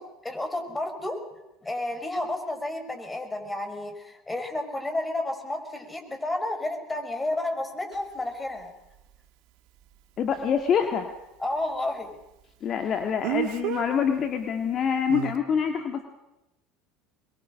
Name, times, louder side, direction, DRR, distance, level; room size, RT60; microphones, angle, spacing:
voice 1, 0.2-1.2 1.6-8.7 11.4-12.1, left 1 dB, 15° left, 5 dB, 5.3 m, -31 dB
Speech, 7.9-8.0 13.2-13.9 15.1-15.3, right 15 dB, 65° right, 1.4 m, -29 dB
voice 2, 10.2-11.1 12.6-16.0, left 7 dB, 45° left, 6 dB, 1.8 m, -26 dB
23.0 x 22.0 x 6.4 m, 0.94 s
hypercardioid pair, 70°, 0 cm